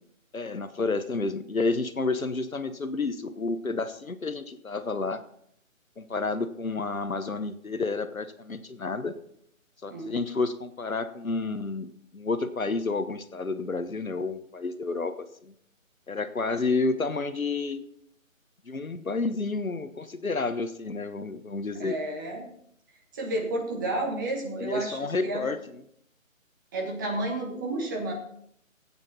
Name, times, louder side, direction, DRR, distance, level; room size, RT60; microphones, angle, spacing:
voice 1, 0.3-5.2 6.0-9.1 9.8-15.1 15.4-15.5 16.1-17.8 18.7-22.0 24.6-25.8, left 3 dB, 80° left, 11 dB, 1.2 m, -30 dB
voice 2, 9.9-10.2 21.8-22.5 23.1-25.5 26.7-28.1, right 2 dB, 15° right, 0 dB, 1.4 m, -31 dB
15.0 x 9.0 x 4.2 m, 0.70 s
figure-of-eight pair, 150°, 41 cm